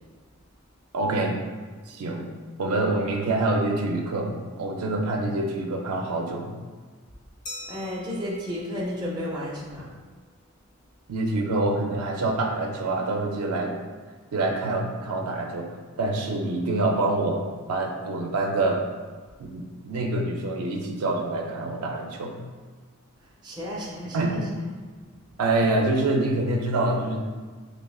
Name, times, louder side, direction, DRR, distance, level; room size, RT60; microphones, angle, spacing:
voice 1, 0.9-1.4 1.9-2.3 2.6-6.5 11.1-13.8 14.3-15.7 16.0-17.4 17.7-18.8 19.4-22.4 24.1-24.4 25.4-27.2, right 2 dB, 90° right, 2 dB, 0.4 m, -26 dB
Glass, 7.5-9.9, left 1 dB, 35° left, 0.4 m, -44 dB
voice 2, 7.7-9.9 23.4-24.3, left 1 dB, 20° right, -4 dB, 0.6 m, -32 dB
3.6 x 3.3 x 2.3 m, 1.5 s
head